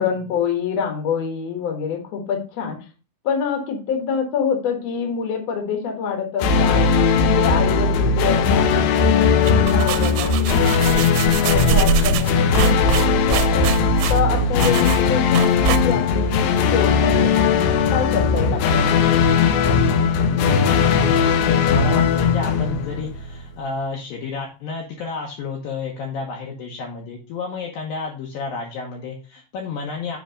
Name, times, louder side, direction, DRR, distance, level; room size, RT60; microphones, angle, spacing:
voice 1, 0.0-2.8 3.2-6.8 7.2-13.6 14.1-17.5 17.9-19.0, left 7 dB, 55° left, 2 dB, 1.9 m, -26 dB
sound 1, 6.4-23.4, left 5 dB, 90° left, 2.0 m, -18 dB
sound 2, 9.3-16.2, right 8 dB, 85° right, 2.8 m, -25 dB
voice 2, 20.4-30.2, left 4 dB, 70° left, -1 dB, 2.3 m, -31 dB
7.7 x 3.4 x 5.0 m, 0.33 s
omnidirectional pair, 5.1 m